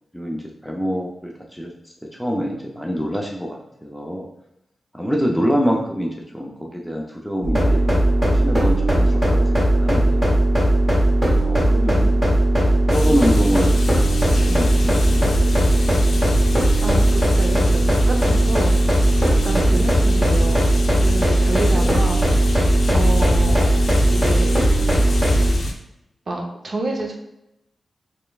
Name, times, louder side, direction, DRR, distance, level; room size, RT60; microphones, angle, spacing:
voice 1, 0.1-1.7 2.2-4.3 4.9-8.0 8.3-10.4 11.3-12.1 12.6-15.9 19.7-19.9 21.7-21.9, equal, ahead, -1 dB, 0.4 m, -26 dB
sound 1, 7.4-25.5, right 1 dB, 20° right, 0.9 m, -17 dB
voice 2, 11.8-12.2 16.8-18.9 19.4-20.7 21.0-22.4 22.9-23.7 24.1-24.6 26.3-27.1, right 2 dB, 45° right, 0 dB, 0.6 m, -28 dB
sound 2, 12.9-25.7, left 3 dB, 80° left, 0.5 m, -27 dB
4.2 x 3.2 x 2.3 m, 0.85 s
wide cardioid pair, 140°, 0 cm